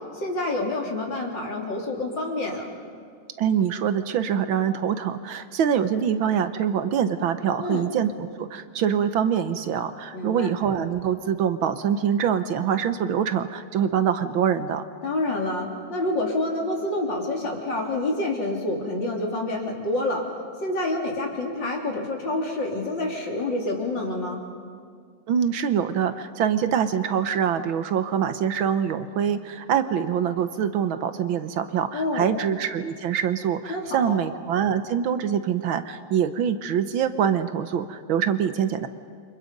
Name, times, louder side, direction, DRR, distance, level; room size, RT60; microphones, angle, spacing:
voice 1, 0.1-2.7 7.6-7.8 10.1-10.6 15.0-20.2 20.6-24.4 31.9-32.4 33.7-34.2, left 2 dB, 55° left, 0 dB, 3.8 m, -28 dB
voice 2, 3.4-14.8 25.3-38.9, right 8 dB, 70° right, 10 dB, 1.7 m, -24 dB
29.0 x 25.5 x 5.3 m, 2.1 s
omnidirectional pair, 2.4 m